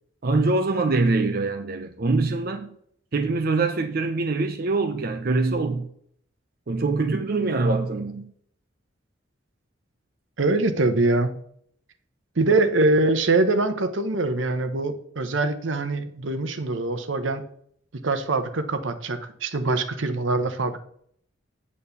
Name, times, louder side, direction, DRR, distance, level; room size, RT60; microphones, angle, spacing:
voice 1, 0.2-2.7 3.1-5.9 6.7-8.3, right 3 dB, 50° right, 0.6 m, -24 dB
voice 2, 10.4-11.3 12.4-17.4 18.0-20.8, right 2 dB, 75° right, 0.9 m, -23 dB
8.6 x 4.2 x 6.9 m
head